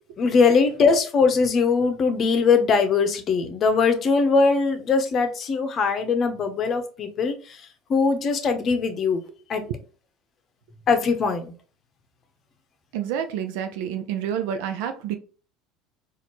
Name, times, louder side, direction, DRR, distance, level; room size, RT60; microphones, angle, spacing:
voice 1, 0.2-7.6 7.9-9.2 9.5-9.6 10.9-11.5, left 4 dB, 40° left, 8 dB, 0.7 m, -21 dB
voice 2, 12.9-15.1, right 9 dB, 80° right, 7 dB, 0.5 m, -29 dB
4.2 x 2.5 x 2.9 m, 0.37 s
supercardioid pair, 115°, 0 cm